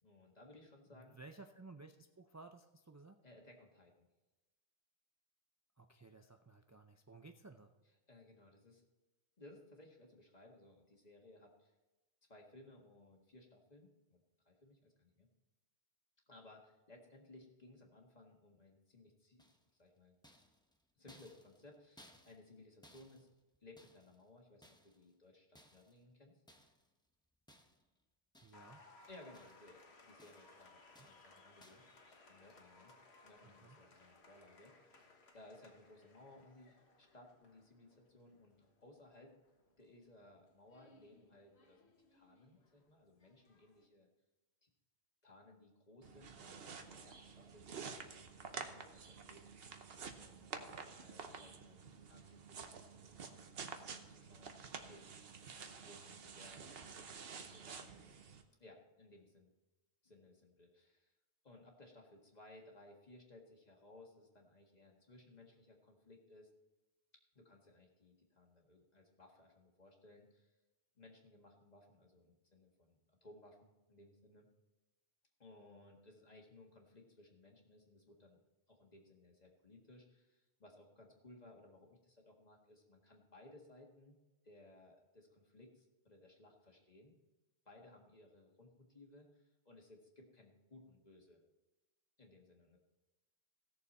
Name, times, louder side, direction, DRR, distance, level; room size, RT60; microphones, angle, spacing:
voice 1, 0.0-1.2 3.2-4.1 8.1-8.9 9.4-11.7 12.3-14.2 14.5-15.3 16.3-19.4 19.7-20.1 21.0-23.3 23.6-26.3 29.1-31.9 32.3-33.0 33.2-38.6 38.8-39.3 39.8-44.1 44.6-44.7 45.2-53.2 53.9-55.1 55.7-57.1 57.3-58.2 58.6-59.5 60.0-61.1 61.4-66.5 67.4-70.5 71.0-74.5 75.4-78.4 78.7-84.2 84.4-87.2 87.7-91.4 92.2-92.8, left 2 dB, 40° left, 0 dB, 1.9 m, -61 dB
voice 2, 0.9-3.2 5.8-7.7 28.4-28.8 31.0-31.2 33.4-33.8, right 3 dB, 30° right, 4 dB, 0.3 m, -57 dB
sound 1, 19.4-19.8 20.2-22.6 22.8-24.3 24.6-25.1 25.6-26.0 26.5-26.9 27.5-28.0 28.3-28.8 29.1-29.8 30.2-30.6 31.0-31.3 31.6-32.0, equal, 5° left, 0.7 m, -65 dB
Applause, 28.5-43.9, left 3 dB, 75° left, 1.6 m, -65 dB
sound 2, 46.0-58.4, right 5 dB, 65° right, 1.1 m, -50 dB
17.0 x 6.9 x 4.2 m, 1.1 s
omnidirectional pair, 1.1 m